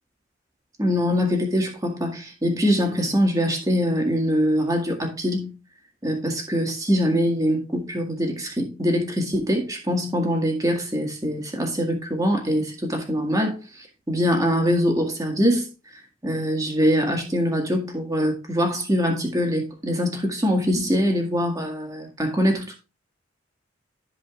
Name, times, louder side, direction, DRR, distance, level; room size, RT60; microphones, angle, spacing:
voice 1, 0.8-5.5 6.0-13.6 14.1-15.7 16.2-22.7, equal, 20° right, 1.9 m, -23 dB
14.0 x 5.1 x 2.4 m
head